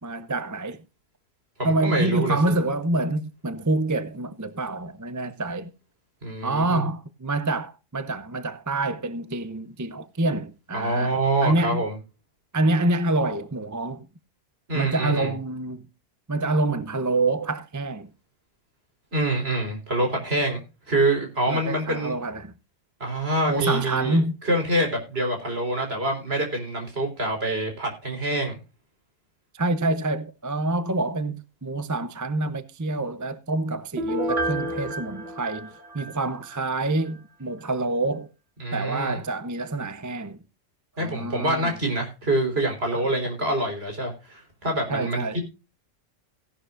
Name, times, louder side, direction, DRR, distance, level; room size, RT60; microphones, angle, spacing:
voice 1, 0.0-0.8 1.6-5.7 6.4-11.8 12.5-14.0 14.7-15.8 16.3-18.1 21.5-22.5 23.5-24.3 29.5-38.3 38.7-40.4 41.0-41.7 42.9-43.1 44.9-45.4, right 2 dB, 20° right, 0.5 m, -27 dB
voice 2, 1.6-2.4 6.2-6.8 10.7-12.0 14.7-15.3 19.1-22.1 23.0-24.2 24.4-28.6 38.6-39.2 41.0-45.4, right 1 dB, 50° right, 4.5 m, -26 dB
Piano, 34.0-36.7 37.0-37.1, right 1 dB, 70° right, 2.8 m, -30 dB
16.5 x 11.5 x 2.5 m
omnidirectional pair, 1.3 m